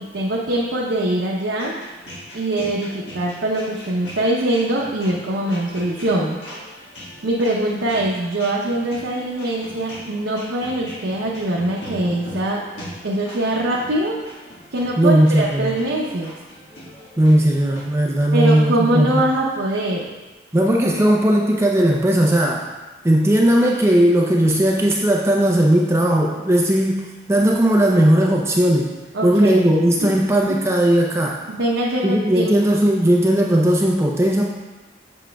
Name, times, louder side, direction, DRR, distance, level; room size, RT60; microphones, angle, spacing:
voice 1, 0.0-1.7 2.3-6.4 7.2-12.6 13.0-14.2 14.7-16.3 18.3-20.1 29.1-29.6 30.0-30.1 30.5-30.6 31.5-32.5, right 1 dB, 80° right, -3 dB, 0.7 m, -22 dB
sound 1, 1.6-17.8, equal, 65° left, 1.6 m, -39 dB
voice 2, 15.0-15.8 17.2-19.2 20.5-22.7 23.0-28.9 29.2-31.4 32.0-34.4, right 1 dB, 15° right, -1 dB, 0.5 m, -17 dB
7.3 x 6.9 x 2.2 m, 1.2 s
head